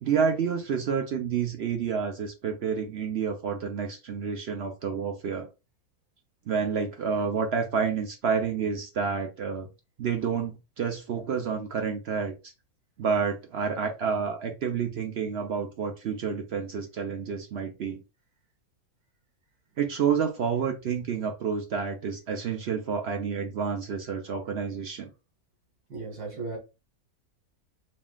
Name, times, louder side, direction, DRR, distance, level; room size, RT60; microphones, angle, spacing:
voice 1, 0.0-5.5 6.5-9.7 10.0-12.3 13.0-18.0 19.8-25.1, right 6 dB, 60° right, 0.7 m, -29 dB
voice 2, 25.9-26.6, right 3 dB, 85° right, 1.9 m, -35 dB
4.2 x 3.5 x 2.3 m
omnidirectional pair, 1.6 m